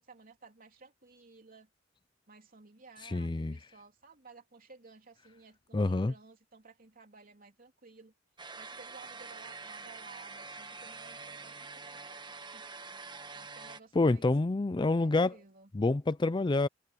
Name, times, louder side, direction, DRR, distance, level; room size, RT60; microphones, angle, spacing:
voice 1, 0.0-1.7 2.3-8.1 8.6-12.2 12.5-12.7 12.9-14.3 14.9-15.7, right 4 dB, 50° right, 3.4 m, -56 dB
voice 2, 3.0-3.5 5.7-6.1 14.0-15.3 15.7-16.7, left 2 dB, 25° left, 0.4 m, -27 dB
sound 1, 8.4-13.8, right 4 dB, 25° right, 1.1 m, -46 dB
head